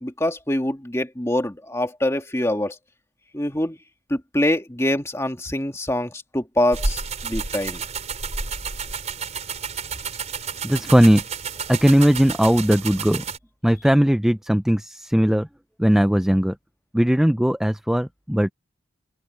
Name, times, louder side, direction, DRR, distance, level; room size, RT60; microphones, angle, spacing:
voice 1, 0.0-2.8 3.3-3.8 4.1-7.8, left 1 dB, 15° left, 2.0 m, -24 dB
sound 1, 6.7-13.4, right 4 dB, 35° right, 4.7 m, -30 dB
voice 2, 10.6-11.2 11.7-13.2 13.6-15.5 15.8-16.6 16.9-18.5, equal, 5° right, 0.4 m, -18 dB
open air
head